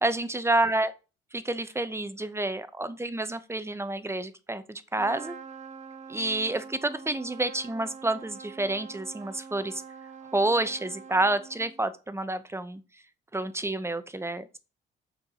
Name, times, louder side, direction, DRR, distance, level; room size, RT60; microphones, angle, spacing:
voice 1, 0.0-0.9 1.3-5.3 6.1-9.8 10.3-12.8 13.3-14.6, right 2 dB, 15° right, 0.8 m, -29 dB
Trumpet, 5.0-11.9, right 5 dB, 35° right, 1.2 m, -45 dB
6.9 x 4.6 x 5.4 m
cardioid pair, 90°, 20 cm